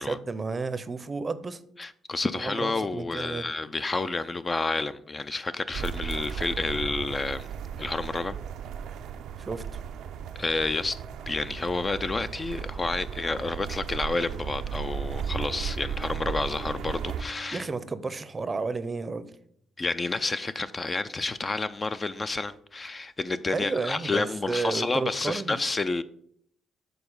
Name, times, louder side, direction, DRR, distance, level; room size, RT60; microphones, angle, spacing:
voice 1, 0.1-1.6 2.3-3.5 9.4-9.8 17.5-19.3 23.5-25.6, right 4 dB, 30° right, 0.5 m, -32 dB
voice 2, 1.8-7.5 7.8-8.4 10.4-11.0 11.3-17.7 19.8-26.0, left 3 dB, 30° left, 0.3 m, -30 dB
sound 1, 5.7-17.2, right 7 dB, 80° right, 0.4 m, -35 dB
Bowed string instrument, 14.6-18.7, right 2 dB, 10° left, 0.8 m, -47 dB
6.8 x 4.0 x 5.4 m
cardioid pair, 90°, 0 cm